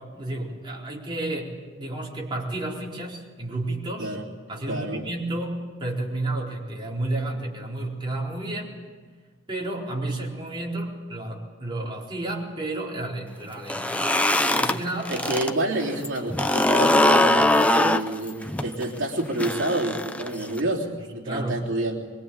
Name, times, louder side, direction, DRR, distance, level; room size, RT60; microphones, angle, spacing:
voice 1, 0.0-4.2 4.5-8.7 9.5-14.0 14.6-15.3 21.2-21.7, right 2 dB, 25° right, -3 dB, 4.2 m, -31 dB
voice 2, 4.7-5.0 15.1-22.0, right 1 dB, 65° right, -2 dB, 3.4 m, -28 dB
sound 1, 13.6-15.5 15.8-20.6, left 1 dB, 5° left, 0.8 m, -22 dB
24.0 x 23.5 x 8.9 m, 1.5 s
head